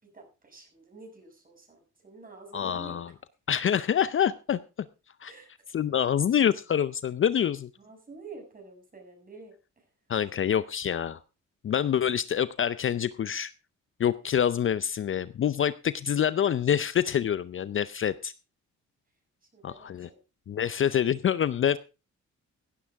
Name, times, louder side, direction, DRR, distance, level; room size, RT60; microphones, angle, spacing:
voice 1, 0.0-3.0 5.3-5.5 7.8-9.9 19.5-20.2, right 3 dB, 30° right, 3 dB, 6.8 m, -49 dB
voice 2, 2.5-3.1 3.5-4.6 5.2-5.3 5.7-7.7 10.1-11.2 11.6-13.5 14.0-18.3 19.6-20.1 20.5-21.8, left 9 dB, 45° left, 16 dB, 0.6 m, -26 dB
16.5 x 11.0 x 3.5 m, 0.30 s
cardioid pair, 90°, 30 cm